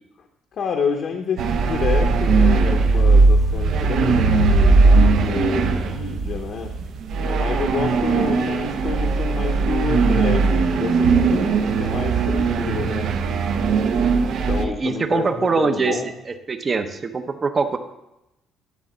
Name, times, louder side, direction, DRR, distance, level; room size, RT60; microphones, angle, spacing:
voice 1, 0.5-6.8 7.2-13.1 14.5-16.1, left 5 dB, 50° left, 2 dB, 0.8 m, -29 dB
sound 1, 1.4-14.6, right 4 dB, 65° right, 0.7 m, -18 dB
voice 2, 14.6-16.0 16.5-17.8, right 4 dB, 30° right, 8 dB, 0.7 m, -22 dB
10.5 x 4.0 x 7.3 m, 0.91 s
cardioid pair, 130°, 0 cm